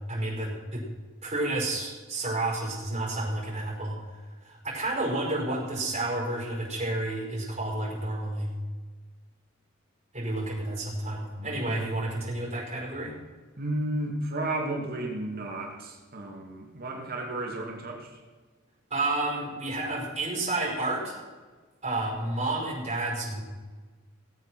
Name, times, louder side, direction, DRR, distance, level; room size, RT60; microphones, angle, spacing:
voice 1, 0.1-0.8 1.2-4.0 4.4-8.5 10.1-13.1 18.9-21.1 21.8-23.4, right 2 dB, 35° right, -3 dB, 5.3 m, -30 dB
voice 2, 11.4-11.8 13.6-18.1, right 1 dB, 50° right, -1 dB, 2.6 m, -33 dB
18.0 x 8.4 x 6.3 m, 1.4 s
head